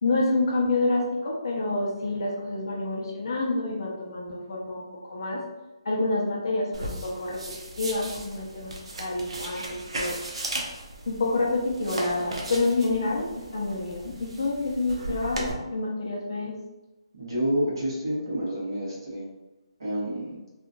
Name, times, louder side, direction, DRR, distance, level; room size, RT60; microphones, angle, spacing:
voice 1, 0.0-5.4 5.8-8.7 9.0-10.2 11.1-16.5, left 2 dB, 45° left, -3 dB, 0.7 m, -28 dB
sound 1, 6.7-15.5, right 2 dB, 80° right, 0.6 m, -37 dB
voice 2, 17.1-19.3 19.8-20.4, equal, 50° right, -5 dB, 1.1 m, -29 dB
2.8 x 2.4 x 2.4 m, 1.0 s
hypercardioid pair, 175°, 3 cm